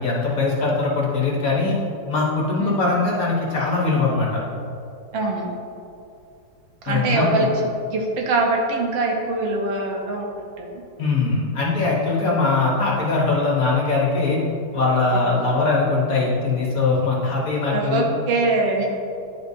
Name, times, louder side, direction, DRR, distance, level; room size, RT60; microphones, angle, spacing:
voice 1, 0.0-1.8 2.1-4.4 6.9-7.3 11.0-14.4 14.7-18.1, left 3 dB, 50° left, -4 dB, 1.4 m, -21 dB
voice 2, 5.1-5.5 6.8-10.3 10.6-10.7 17.7-18.9, right 2 dB, 70° right, 0 dB, 1.6 m, -23 dB
10.5 x 5.1 x 2.7 m, 2.6 s
omnidirectional pair, 2.1 m